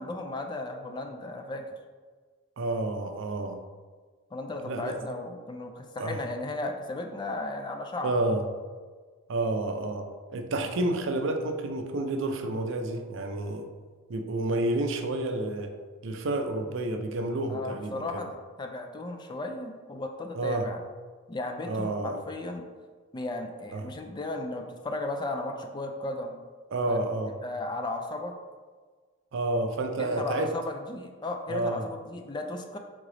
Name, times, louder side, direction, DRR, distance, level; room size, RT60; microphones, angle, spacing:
voice 1, 0.0-1.6 4.3-8.2 17.5-20.8 21.3-22.6 23.1-26.3 26.9-27.0 27.4-28.4 30.0-32.8, left 2 dB, 20° left, 4 dB, 0.3 m, -35 dB
voice 2, 2.6-3.6 4.6-5.0 6.0-6.2 8.0-8.4 9.3-13.7 14.1-15.7 16.0-18.2 20.3-20.7 21.6-22.2 23.7-23.9 26.7-27.3 29.3-30.5 31.5-31.9, right 2 dB, 65° right, 5 dB, 0.5 m, -30 dB
3.8 x 3.6 x 3.3 m, 1.5 s
head